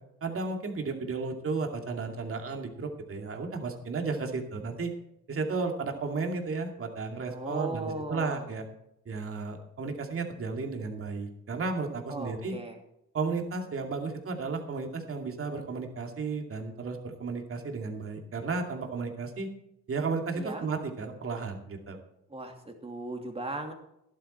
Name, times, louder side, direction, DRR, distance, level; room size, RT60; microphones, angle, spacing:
voice 1, 0.2-4.9 5.3-8.6 9.1-12.6 13.1-19.5 19.9-22.0, right 4 dB, 45° right, 3 dB, 2.5 m, -33 dB
voice 2, 7.3-8.5 12.1-12.8 20.3-20.7 22.3-23.7, right 2 dB, 20° right, 3 dB, 2.7 m, -37 dB
12.5 x 11.5 x 4.4 m, 0.82 s
cardioid pair, 90°, 30 cm